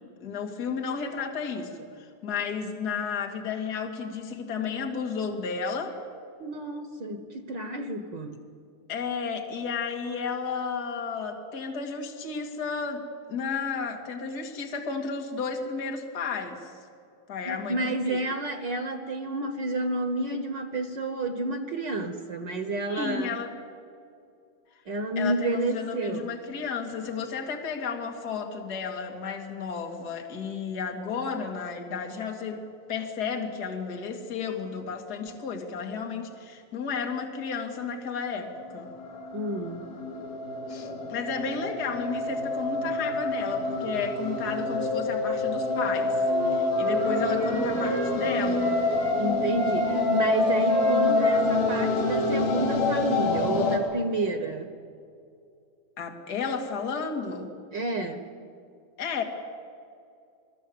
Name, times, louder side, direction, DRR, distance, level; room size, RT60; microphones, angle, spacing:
voice 1, 0.2-6.0 8.9-13.0 13.3-16.7 17.3-18.2 22.9-23.5 25.2-32.6 32.9-38.9 40.7-48.8 56.0-57.5 59.0-59.2, left 5 dB, 30° left, 3 dB, 2.5 m, -33 dB
voice 2, 6.4-8.4 17.4-23.3 24.9-26.3 39.3-39.8 49.2-54.7 57.7-58.2, right 2 dB, 90° right, 7 dB, 0.9 m, -30 dB
sound 1, 38.3-53.8, left 2 dB, 90° left, 4.9 m, -27 dB
Wind instrument woodwind instrument, 46.2-49.2 49.5-52.8, left 1 dB, 50° right, 9.0 m, -32 dB
29.0 x 20.5 x 8.0 m, 2.4 s
omnidirectional pair, 4.1 m